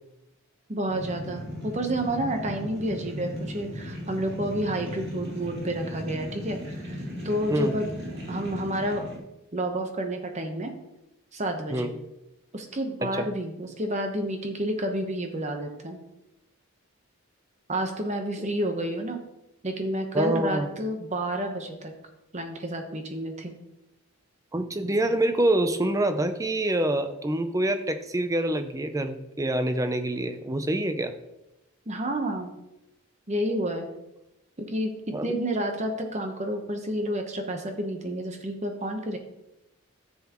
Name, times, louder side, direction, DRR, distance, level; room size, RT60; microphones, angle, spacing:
voice 1, 0.7-7.9 8.3-9.0 9.5-10.7 11.3-11.9 12.5-16.0 17.7-19.2 19.6-21.9 22.3-23.5 31.9-32.5 33.3-33.9 34.6-34.9 35.2-39.2, right 1 dB, 30° right, 4 dB, 1.0 m, -30 dB
sound 1, 0.9-9.2, equal, 50° right, 2.4 m, -37 dB
voice 2, 20.1-20.7 24.5-31.1 35.1-35.3, right 1 dB, 15° right, 9 dB, 0.4 m, -26 dB
10.0 x 7.2 x 3.0 m, 0.91 s
head